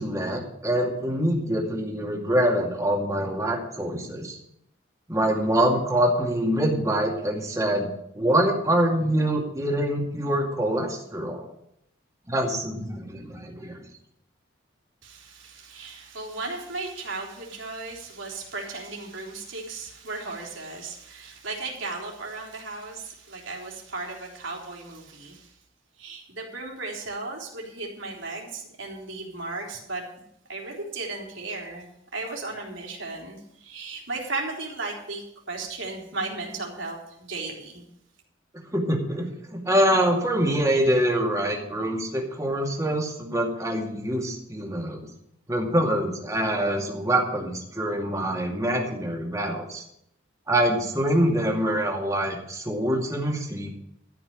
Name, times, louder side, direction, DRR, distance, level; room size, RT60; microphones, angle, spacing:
voice 1, 0.0-4.4 5.1-7.9 8.1-11.5 12.3-13.8 38.5-45.1 45.5-49.8 50.5-53.7, right 1 dB, 15° right, 0 dB, 2.4 m, -25 dB
voice 2, 15.0-25.5 26.0-30.0 30.5-31.9 32.1-37.8, right 3 dB, 75° right, -1 dB, 3.7 m, -35 dB
13.5 x 6.2 x 8.9 m, 0.76 s
head